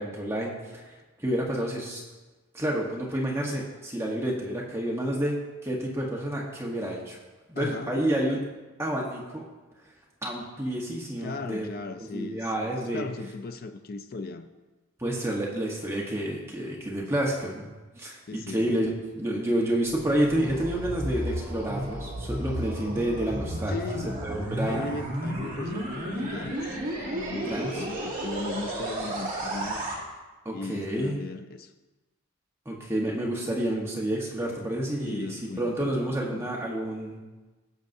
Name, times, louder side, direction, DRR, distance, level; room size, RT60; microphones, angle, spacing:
voice 1, 0.0-2.0 2.5-7.2 7.5-8.5 8.8-9.4 10.2-11.7 12.1-13.0 15.0-23.8 24.2-24.9 27.4-27.8 30.4-31.2 32.6-37.2, right 1 dB, 10° right, -3 dB, 1.1 m, -29 dB
voice 2, 7.5-8.0 11.2-14.5 18.3-18.7 23.7-24.2 24.6-26.8 27.0-29.8 30.5-31.7 35.1-36.5, left 3 dB, 45° left, 7 dB, 0.4 m, -37 dB
sound 1, 19.9-30.0, right 1 dB, 40° right, 2.2 m, -33 dB
16.5 x 6.3 x 2.7 m, 1.2 s
head